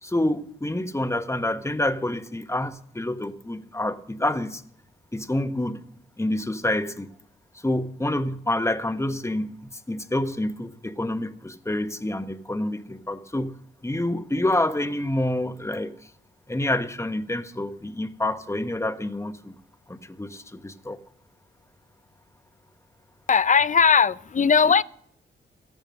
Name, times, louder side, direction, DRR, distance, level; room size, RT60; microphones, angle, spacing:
voice 1, 0.0-4.6 5.1-5.8 6.2-7.1 7.6-9.6 9.9-13.5 13.8-15.9 16.5-19.5 19.9-21.0, left 1 dB, 15° left, 1.3 m, -27 dB
voice 2, 23.3-24.8, left 6 dB, 40° left, 0.5 m, -18 dB
13.5 x 11.0 x 6.5 m
cardioid pair, 60°, 21 cm